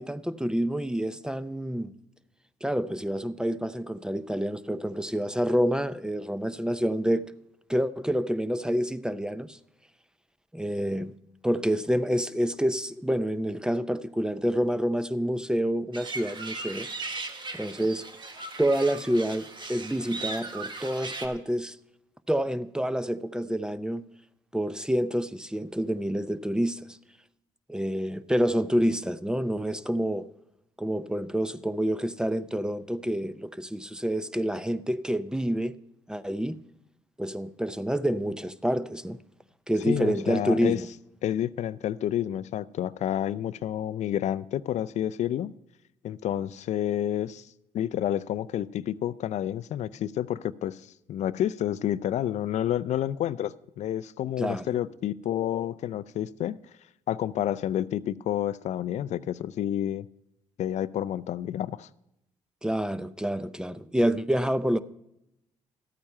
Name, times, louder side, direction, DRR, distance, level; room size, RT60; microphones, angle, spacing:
voice 1, 0.0-1.9 2.6-7.2 7.7-9.6 10.5-11.1 11.4-16.9 17.5-18.1 18.6-21.8 22.3-24.0 24.5-26.9 27.7-30.3 30.8-35.8 36.1-36.6 37.2-39.2 39.7-40.9 54.4-54.7 62.6-64.8, equal, 5° right, 0.6 m, -28 dB
sound 1, 15.9-21.3, right 3 dB, 40° right, 1.5 m, -38 dB
voice 2, 39.9-40.8 41.2-45.5 46.0-47.5 47.7-56.6 57.1-60.1 60.6-61.9, left 11 dB, 70° left, 0.4 m, -29 dB
12.5 x 8.8 x 5.5 m
supercardioid pair, 70°, 12 cm